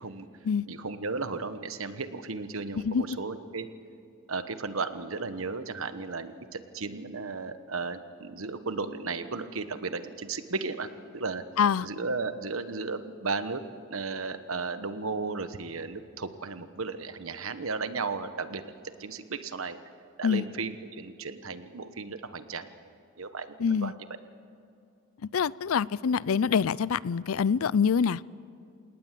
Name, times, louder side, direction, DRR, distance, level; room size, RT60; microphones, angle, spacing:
voice 1, 0.7-3.7 4.3-10.9 11.1-11.4 11.8-13.6 13.9-19.8 20.2-22.7 23.2-23.9, right 4 dB, 80° right, 10 dB, 1.2 m, -35 dB
voice 2, 23.6-23.9 25.3-28.2, left 6 dB, 90° left, 21 dB, 0.5 m, -25 dB
27.5 x 19.0 x 7.6 m, 2.5 s
head